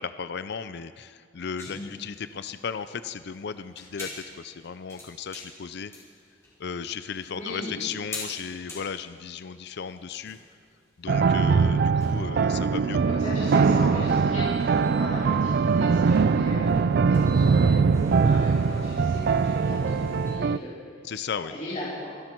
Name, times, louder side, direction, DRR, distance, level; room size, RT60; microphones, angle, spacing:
voice 1, 0.0-5.9 6.6-10.4 11.0-13.0 21.0-21.5, left 6 dB, 60° left, 12 dB, 0.5 m, -35 dB
sound 1, 1.6-20.3, left 2 dB, 15° left, 4.7 m, -46 dB
voice 2, 7.3-7.8 13.0-20.7 21.5-22.1, left 1 dB, 40° left, -9 dB, 4.9 m, -37 dB
sound 2, 11.1-20.6, right 5 dB, 55° right, 0.4 m, -22 dB
26.0 x 11.5 x 4.6 m, 2.1 s
head